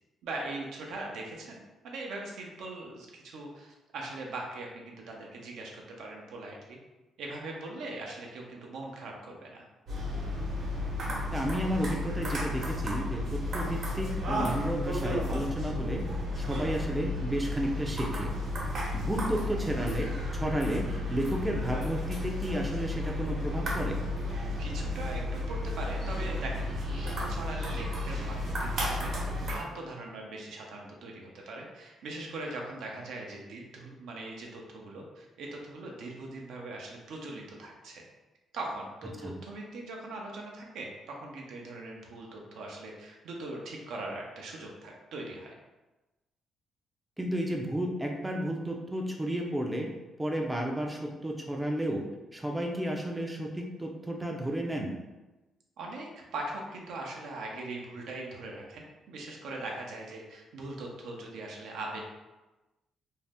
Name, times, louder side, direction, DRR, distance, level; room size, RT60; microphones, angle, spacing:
voice 1, 0.2-5.7 6.0-6.8 7.2-9.6 24.6-38.0 38.5-45.5 55.8-62.0, right 2 dB, 80° right, -1 dB, 0.6 m, -41 dB
sound 1, 9.9-29.6, left 1 dB, 65° right, 0.9 m, -33 dB
voice 2, 11.3-16.1 16.4-18.3 18.9-24.0 39.2-39.3 47.2-49.9 50.2-52.0 52.3-54.9, right 1 dB, 10° right, 1 dB, 0.4 m, -32 dB
2.6 x 2.0 x 3.3 m, 1.1 s
cardioid pair, 90°, 0 cm